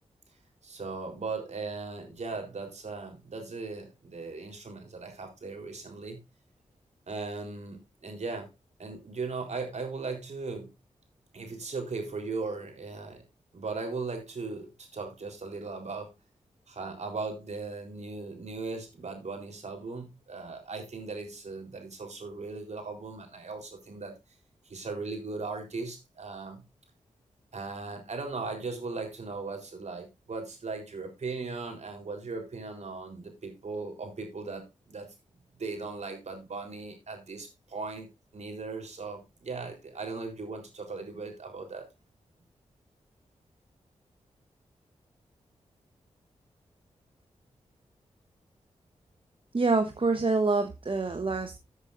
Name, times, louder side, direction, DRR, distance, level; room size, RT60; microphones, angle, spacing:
voice 1, 0.6-6.2 7.1-8.5 8.8-10.7 11.3-13.2 13.5-16.1 16.7-24.1 24.7-26.6 27.5-35.1 35.6-38.1 38.3-41.9, right 3 dB, 60° right, 3 dB, 3.9 m, -38 dB
voice 2, 49.5-51.6, right 3 dB, 45° right, 7 dB, 1.2 m, -26 dB
14.0 x 8.2 x 2.6 m, 0.23 s
cardioid pair, 45°, 13 cm